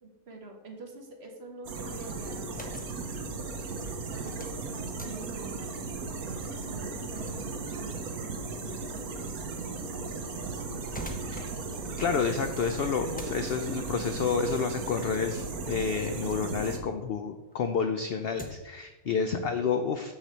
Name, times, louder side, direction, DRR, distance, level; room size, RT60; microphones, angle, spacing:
voice 1, 0.0-2.6 4.1-10.6 19.0-19.4, right 3 dB, 50° right, 2 dB, 1.3 m, -47 dB
sound 1, 1.6-16.8, right 4 dB, 80° right, 1.3 m, -36 dB
sound 2, 2.5-17.0 17.4-18.8, left 1 dB, 10° left, 0.4 m, -50 dB
voice 2, 12.0-20.1, left 6 dB, 70° left, 7 dB, 0.5 m, -30 dB
6.6 x 5.8 x 4.3 m, 1.1 s
omnidirectional pair, 1.5 m